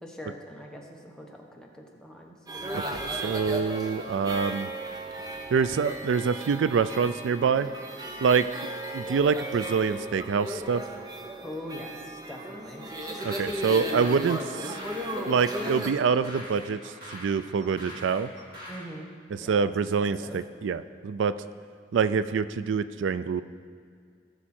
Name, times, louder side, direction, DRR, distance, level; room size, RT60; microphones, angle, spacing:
voice 1, 0.0-2.4 11.4-12.9 18.7-19.1 19.4-19.7 20.0-20.4, equal, 5° left, -1 dB, 1.1 m, -42 dB
sound 1, 2.5-15.9, right 1 dB, 20° right, 0.9 m, -35 dB
voice 2, 2.7-4.7 5.5-7.7 8.2-8.5 8.9-10.8 13.2-14.8 15.3-18.3 19.4-21.3 21.9-23.4, right 6 dB, 85° right, 14 dB, 0.4 m, -26 dB
sound 2, 13.0-18.9, equal, 50° right, 3.2 m, -44 dB
18.5 x 6.2 x 4.3 m, 2.2 s
head